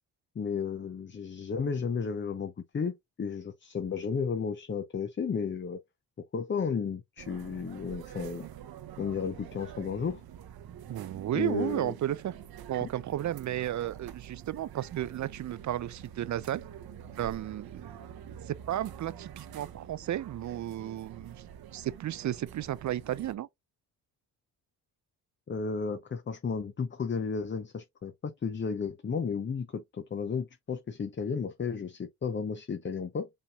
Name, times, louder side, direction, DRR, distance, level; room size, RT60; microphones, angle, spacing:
voice 1, 0.4-5.8 6.3-8.4 9.0-10.2 11.3-11.9 12.8-12.9 25.5-33.3, left 5 dB, 30° left, 0.7 m, -33 dB
sound 1, 7.2-23.4, right 10 dB, 65° right, 0.8 m, -46 dB
voice 2, 10.9-12.3 12.7-16.6 17.2-21.4 21.7-23.5, right 12 dB, 50° right, 0.5 m, -33 dB
5.3 x 3.3 x 2.3 m
supercardioid pair, 70°, 39 cm